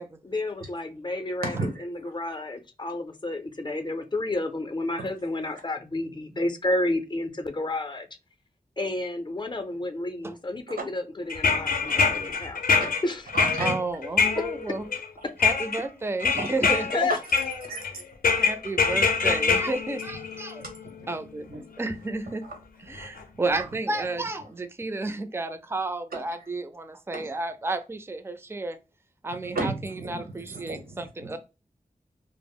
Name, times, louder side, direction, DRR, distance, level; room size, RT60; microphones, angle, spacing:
voice 1, 0.2-1.5 1.8-8.1 8.8-12.6 13.0-13.2 14.4-14.5 15.2-15.3 16.6-17.2, left 2 dB, 30° left, 0.5 m, -30 dB
voice 2, 1.4-1.8 5.0-5.1 11.9-12.0 12.8-12.9 13.3-13.7 16.4-16.5 17.1-17.2 17.7-18.0 18.6-18.7 19.3-19.4 20.3-21.1 21.5-21.6 22.4-22.6 26.1-26.2 27.1-27.3 29.4-31.4, right 2 dB, 85° right, 0.9 m, -34 dB
sound 1, 11.3-15.0 15.4-15.8 16.2-17.0 17.3-17.9 18.2-20.9 21.9-22.0 23.0-23.2 23.5-23.6, left 5 dB, 75° left, 0.5 m, -24 dB
voice 3, 13.6-14.8 15.4-17.1 18.4-20.6 21.1-22.4 22.9-28.8 29.2-29.7 30.1-31.4, right 2 dB, 15° right, 0.4 m, -31 dB
2.0 x 2.0 x 3.5 m
cardioid pair, 45°, 15 cm